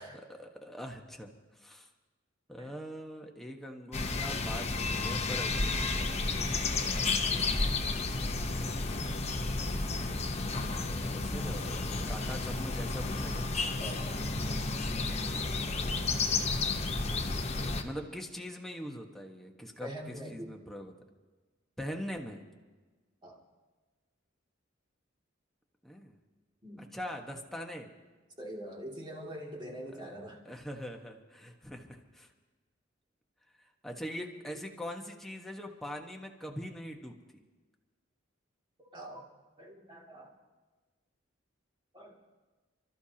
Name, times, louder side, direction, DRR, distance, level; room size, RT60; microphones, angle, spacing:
voice 1, 0.3-1.9 2.5-6.1 10.9-13.5 17.8-20.9 21.8-22.4 25.8-26.2 26.8-27.9 29.9-30.1 30.4-32.3 33.6-37.2, equal, ahead, 1 dB, 1.4 m, -42 dB
sound 1, 3.9-17.8, left 3 dB, 35° left, 1.0 m, -32 dB
voice 2, 13.8-14.2 19.8-20.7 23.2-23.4 26.6-26.9 28.4-30.4 38.9-39.3 39.6-40.3 41.9-42.2, equal, 25° right, -2 dB, 2.6 m, -44 dB
29.5 x 13.5 x 2.9 m, 1.3 s
head